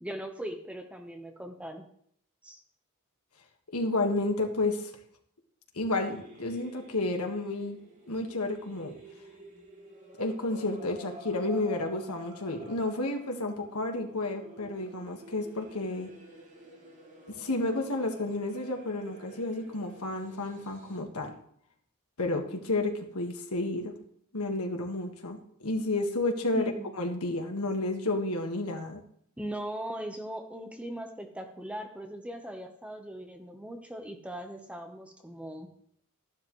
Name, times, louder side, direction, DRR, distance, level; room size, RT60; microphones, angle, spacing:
voice 1, 0.0-1.8 2.4-2.6 26.5-26.9 29.4-35.7, right 1 dB, 5° right, 5 dB, 1.1 m, -39 dB
voice 2, 3.7-4.9 5.8-7.8 8.1-9.0 10.2-16.1 17.4-21.3 22.2-23.9 24.3-26.7 27.0-29.0, left 2 dB, 80° left, 4 dB, 1.8 m, -31 dB
sound 1, 6.0-21.0, right 1 dB, 35° right, 2.9 m, -50 dB
12.5 x 11.5 x 3.2 m, 0.66 s
head